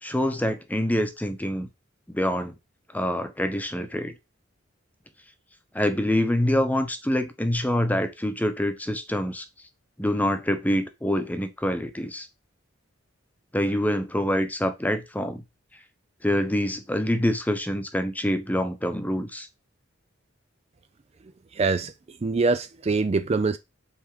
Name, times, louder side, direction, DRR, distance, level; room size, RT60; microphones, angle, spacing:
voice 1, 0.0-1.7 2.1-2.5 2.9-4.1 5.7-9.4 10.0-12.3 13.5-15.4 16.2-19.5, equal, 10° left, 0.9 m, -26 dB
voice 2, 21.6-21.9 22.2-23.6, right 3 dB, 30° right, 0.4 m, -23 dB
5.7 x 4.4 x 4.9 m
head